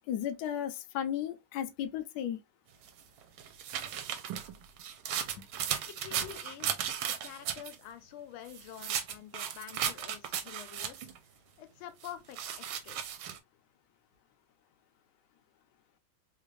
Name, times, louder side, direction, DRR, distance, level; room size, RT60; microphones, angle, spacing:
voice 1, 0.1-2.4, left 10 dB, 70° left, 1.0 m, -34 dB
sound 1, 2.9-7.8 8.5-11.2 12.0-13.4, right 9 dB, 80° right, 1.4 m, -36 dB
voice 2, 5.8-6.9 7.2-11.1 11.6-13.2, left 11 dB, 85° left, 1.5 m, -48 dB
3.6 x 2.4 x 3.0 m
omnidirectional pair, 2.3 m